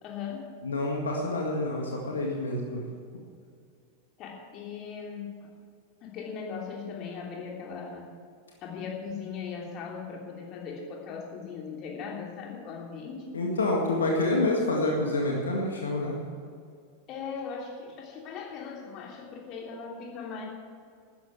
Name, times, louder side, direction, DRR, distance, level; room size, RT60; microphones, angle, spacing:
voice 1, 0.0-0.5 4.2-5.5 6.0-8.1 8.6-13.3 17.1-20.4, left 5 dB, 35° left, -1 dB, 3.1 m, -39 dB
voice 2, 0.6-2.8 13.3-16.2, left 2 dB, 70° left, -1 dB, 1.9 m, -27 dB
13.0 x 10.0 x 7.3 m, 2.3 s
figure-of-eight pair, 90°, 0 cm